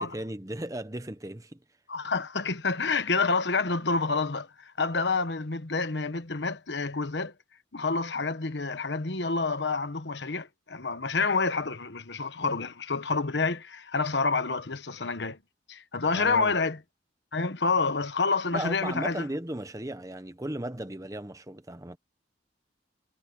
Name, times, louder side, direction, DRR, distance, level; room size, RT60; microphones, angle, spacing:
voice 1, 0.0-1.6 16.1-16.5 18.5-22.0, right 1 dB, 20° right, 1.0 m, -36 dB
voice 2, 1.9-7.3 7.7-15.4 15.7-16.8 17.3-19.2, left 4 dB, 70° left, 1.2 m, -28 dB
head